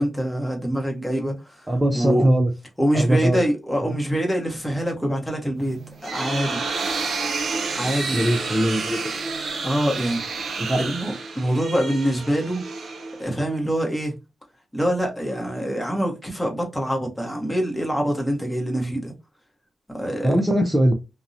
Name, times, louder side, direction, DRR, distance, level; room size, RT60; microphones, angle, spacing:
voice 1, 0.0-1.7 1.9-2.3 2.8-5.8 6.0-6.6 6.9-7.1 7.7-8.2 9.6-10.2 10.8-12.6 13.2-14.1 14.7-19.1 20.0-20.3, equal, 5° left, 0.8 m, -25 dB
voice 2, 1.7-2.5 2.9-3.4 3.8-4.0 8.1-9.0 10.6-10.8 20.2-20.9, right 1 dB, 10° right, 0.4 m, -20 dB
sound 1, 5.7-13.5, right 4 dB, 65° right, 0.5 m, -30 dB
2.5 x 2.0 x 2.6 m
wide cardioid pair, 130°, 0 cm